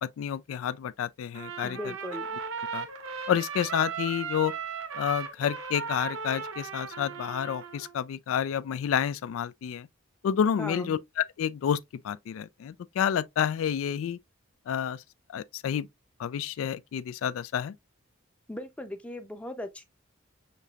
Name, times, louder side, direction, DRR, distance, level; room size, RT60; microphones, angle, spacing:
voice 1, 0.0-1.8 2.7-2.9 3.3-4.5 4.9-9.9 10.2-11.8 12.0-14.2 14.7-15.0 15.3-15.9 16.2-17.7, left 8 dB, 80° left, 0.3 m, -29 dB
Trumpet, 1.4-7.9, right 6 dB, 80° right, 0.9 m, -37 dB
voice 2, 1.6-2.4 10.6-11.0 18.5-19.8, left 1 dB, 5° left, 0.5 m, -38 dB
6.6 x 2.8 x 2.3 m
head